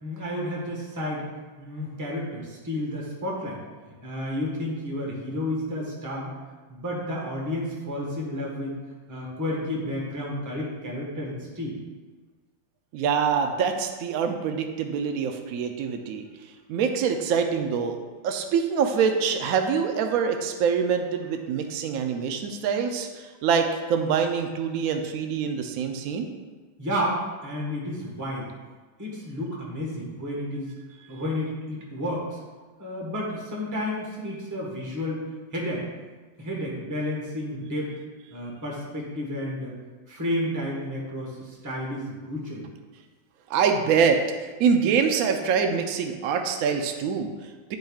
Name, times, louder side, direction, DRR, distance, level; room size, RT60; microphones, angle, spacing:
voice 1, 0.0-1.3 1.6-3.6 4.0-6.3 6.7-8.7 9.1-11.7 26.8-28.5 29.0-30.7 31.1-32.4 32.8-35.8 36.4-37.9 38.3-39.8 40.1-42.6, left 1 dB, 10° right, -3 dB, 1.0 m, -31 dB
voice 2, 12.9-18.0 18.2-26.3 31.1-31.2 43.5-47.8, right 6 dB, 80° right, 5 dB, 0.7 m, -25 dB
10.0 x 5.4 x 2.4 m, 1.4 s
omnidirectional pair, 2.1 m